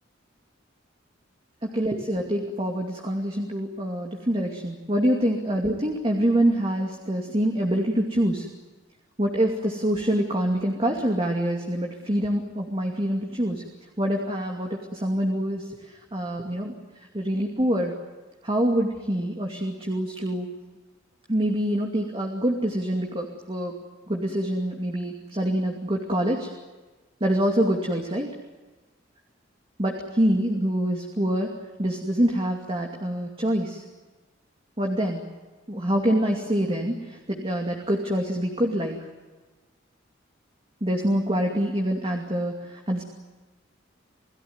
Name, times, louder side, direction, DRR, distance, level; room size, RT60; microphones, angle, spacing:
voice 1, 1.6-8.5 9.2-13.6 14.0-16.7 17.1-17.9 18.4-20.5 21.3-23.7 24.1-26.5 27.2-28.3 29.8-31.5 31.8-33.8 34.8-35.2 35.7-39.1 40.8-43.0, right 1 dB, 30° right, 1 dB, 2.5 m, -25 dB
29.0 x 18.0 x 9.7 m, 1.2 s
head